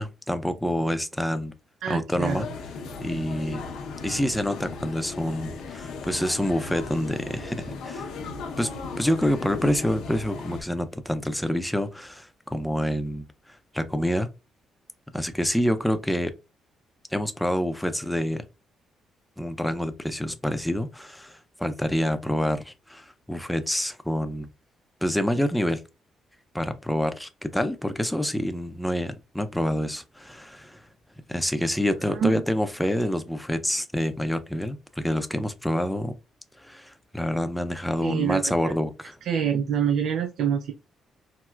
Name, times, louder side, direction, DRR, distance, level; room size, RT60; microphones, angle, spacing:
voice 1, 0.0-1.5 1.9-2.5 3.0-3.6 4.0-8.1 8.6-8.7 9.0-13.2 13.7-14.3 15.1-16.3 17.1-18.5 19.4-24.5 25.0-25.8 26.5-30.8 31.3-36.1 36.6-39.2, equal, 5° left, 0.5 m, -27 dB
voice 2, 1.8-2.5 32.1-32.4 38.0-38.7 39.2-40.7, right 8 dB, 75° right, 0.3 m, -26 dB
sound 1, 2.2-10.6, left 4 dB, 85° left, 0.7 m, -36 dB
4.3 x 2.0 x 2.3 m
cardioid pair, 90°, 0 cm